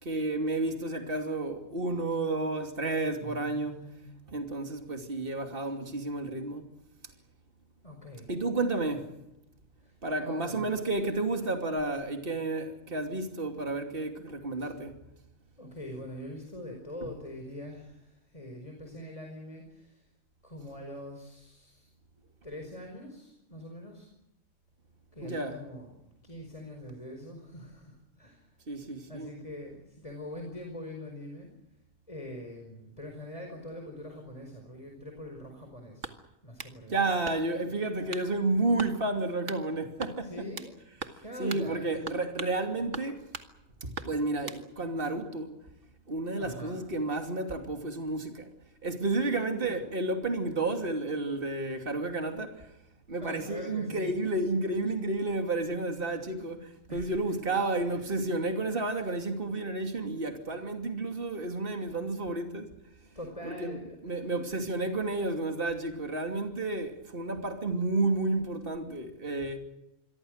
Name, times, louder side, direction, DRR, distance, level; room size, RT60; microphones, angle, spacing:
voice 1, 0.0-3.9 4.3-6.7 8.3-9.1 10.0-14.9 25.2-25.6 28.7-29.3 36.9-40.5 41.4-43.2 43.8-45.5 46.1-48.5 48.8-52.7 53.1-62.7 63.4-69.6, right 2 dB, 40° right, 3.0 m, -31 dB
voice 2, 3.2-4.2 7.8-8.3 9.8-10.7 11.3-11.5 15.6-20.0 20.4-21.9 22.2-24.1 25.1-25.9 26.2-28.5 29.1-31.5 32.1-36.1 36.4-37.0 40.2-40.7 41.2-41.9 46.4-46.8 49.2-50.1 53.2-54.1 56.9-57.3 57.8-58.0 63.1-64.4, left 1 dB, 25° left, 5.1 m, -43 dB
sound 1, 36.0-36.8 37.2-37.7 38.1-38.3 38.8-39.0 39.5-39.6 40.0-40.7 41.0-41.2 41.5-41.7 42.1-42.6 42.9-43.5 43.9-44.6, right 4 dB, 60° right, 2.3 m, -40 dB
27.5 x 23.5 x 6.5 m
omnidirectional pair, 1.4 m